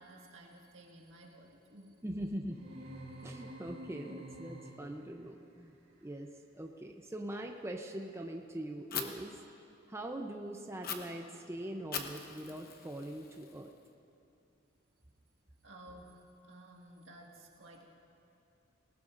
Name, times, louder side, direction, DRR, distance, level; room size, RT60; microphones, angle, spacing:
voice 1, 0.0-1.9 3.2-3.3 15.6-17.8, right 1 dB, 75° right, 0 dB, 1.7 m, -54 dB
voice 2, 2.0-2.6 3.2-5.7 6.0-6.3 6.6-9.4 9.9-13.7, right 1 dB, 15° right, 2 dB, 0.5 m, -42 dB
sound 1, 2.5-5.1, right 1 dB, 50° right, 2.5 m, -48 dB
Fire, 8.9-9.0 10.8-10.9 11.9-13.9, left 7 dB, 45° left, 0.9 m, -41 dB
19.5 x 18.5 x 2.5 m, 2.7 s
head